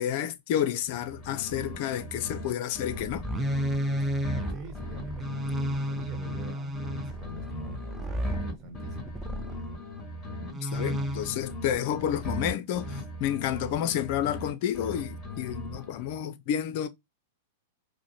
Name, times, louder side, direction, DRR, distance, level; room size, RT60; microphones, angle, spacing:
voice 1, 0.0-3.2 10.4-16.9, left 10 dB, 50° left, 0.5 m, -30 dB
sound 1, 0.8-2.5 2.7-6.5 6.7-10.5 10.7-14.5 14.7-16.2, left 1 dB, 25° left, 2.7 m, -38 dB
sound 2, 2.9-9.7 10.5-11.5 12.8-13.0, equal, 15° right, 0.7 m, -33 dB
voice 2, 4.5-9.1, right 2 dB, 35° right, 1.1 m, -45 dB
4.8 x 2.1 x 2.9 m
hypercardioid pair, 105°, 0 cm